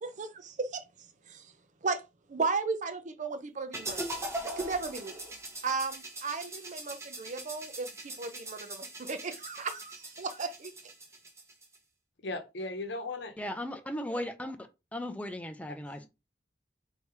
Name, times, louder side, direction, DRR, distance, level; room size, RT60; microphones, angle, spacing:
voice 1, 0.0-0.8 1.3-1.5 1.8-2.0 2.3-5.3 5.6-10.7, right 4 dB, 45° right, 0.6 m, -35 dB
sound 1, 3.7-11.8, right 1 dB, 15° right, 1.0 m, -41 dB
voice 2, 12.2-13.3 15.7-15.8, left 2 dB, 70° left, 0.8 m, -37 dB
voice 3, 13.4-14.6 14.9-16.1, left 1 dB, 10° left, 0.4 m, -36 dB
3.2 x 2.8 x 4.6 m
head